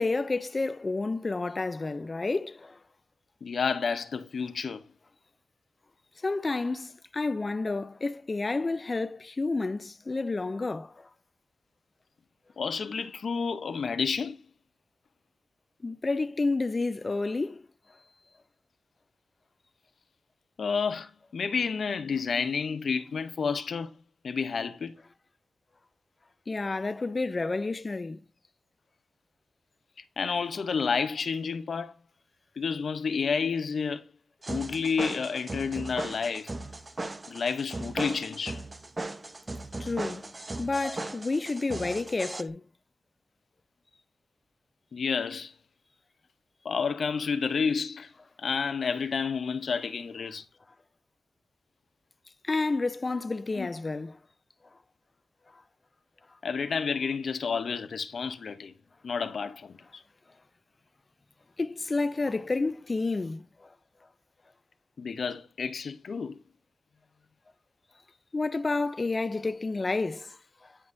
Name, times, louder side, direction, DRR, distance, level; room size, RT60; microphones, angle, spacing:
voice 1, 0.0-2.8 6.2-11.1 15.8-17.7 26.5-28.2 39.8-40.3 40.6-42.6 52.4-54.2 55.5-55.6 61.6-63.7 68.3-70.7, left 3 dB, 35° left, 0.3 m, -30 dB
voice 2, 3.4-4.8 12.6-14.4 20.6-23.9 24.2-24.9 30.2-31.9 32.6-34.0 34.5-36.5 37.3-38.6 44.9-45.5 46.6-48.1 48.4-50.4 53.6-53.7 56.4-58.7 59.0-60.0 65.0-66.4, left 5 dB, 70° left, 0.7 m, -30 dB
sound 1, 34.4-42.4, right 2 dB, 30° right, 0.6 m, -37 dB
9.5 x 5.4 x 2.6 m
wide cardioid pair, 100°, 0 cm